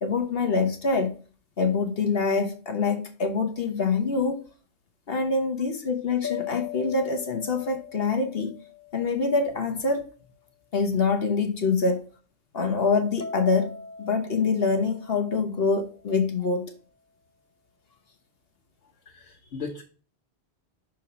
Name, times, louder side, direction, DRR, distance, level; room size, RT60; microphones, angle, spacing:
voice 1, 0.0-1.1 1.6-4.4 5.1-8.5 8.9-10.1 10.7-12.0 12.5-13.7 14.0-16.7, left 4 dB, 60° left, 5 dB, 1.2 m, -25 dB
sound 1, 6.2-9.8 13.2-16.2, left 8 dB, 20° left, 0.4 m, -40 dB
voice 2, 18.8-19.8, left 4 dB, 90° left, 1 dB, 1.3 m, -38 dB
6.1 x 4.6 x 4.0 m, 0.38 s
omnidirectional pair, 1.1 m